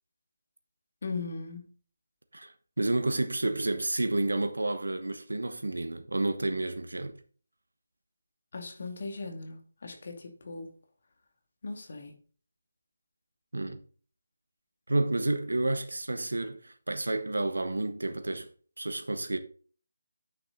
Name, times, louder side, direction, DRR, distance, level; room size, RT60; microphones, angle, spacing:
voice 1, 1.0-1.6 8.5-10.7 11.6-12.1, left 3 dB, 55° left, 2.3 m, -38 dB
voice 2, 2.3-7.1 13.5-13.8 14.9-18.5 18.8-19.4, right 2 dB, 85° right, 1.1 m, -30 dB
9.2 x 6.9 x 3.9 m
figure-of-eight pair, 160°, 0 cm